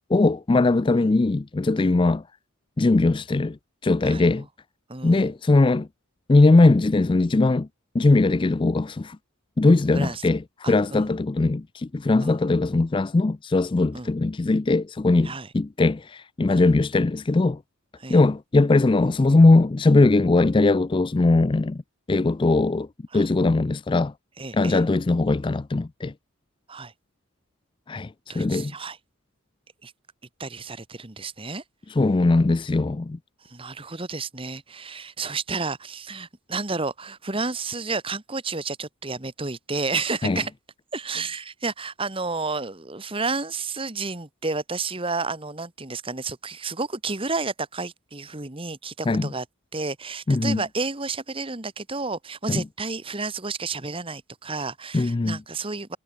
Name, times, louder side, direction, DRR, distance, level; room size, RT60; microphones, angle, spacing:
voice 1, 0.0-2.2 2.8-3.6 3.8-4.5 5.0-5.9 6.3-7.7 7.9-9.2 9.6-17.6 18.1-21.8 22.1-22.9 23.1-24.1 24.5-26.1 27.9-28.7 31.9-33.2 40.2-40.4 49.1-49.3 50.3-50.6 52.5-52.6 54.9-55.4, left 2 dB, 25° left, 0.3 m, -20 dB
voice 2, 4.9-5.3 9.9-10.2 10.6-11.1 12.2-12.4 13.9-14.1 15.2-15.5 16.5-16.7 18.0-18.2 23.1-23.3 24.4-24.8 26.7-26.9 28.3-29.0 29.8-29.9 30.4-31.6 33.4-40.5 40.9-49.4 49.7-56.0, right 3 dB, 25° right, 1.6 m, -31 dB
head